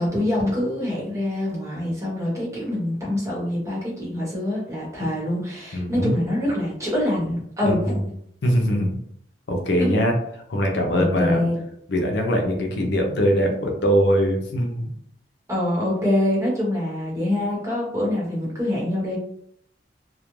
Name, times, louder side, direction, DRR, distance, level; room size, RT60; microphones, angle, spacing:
voice 1, 0.0-8.1 9.8-9.9 10.9-11.5 15.5-19.2, left 1 dB, 15° right, -5 dB, 1.0 m, -25 dB
voice 2, 5.7-6.1 7.6-7.7 8.4-9.0 9.5-10.1 10.5-11.5 11.9-14.9, equal, 70° left, 2 dB, 0.5 m, -22 dB
2.3 x 2.1 x 3.0 m, 0.69 s
head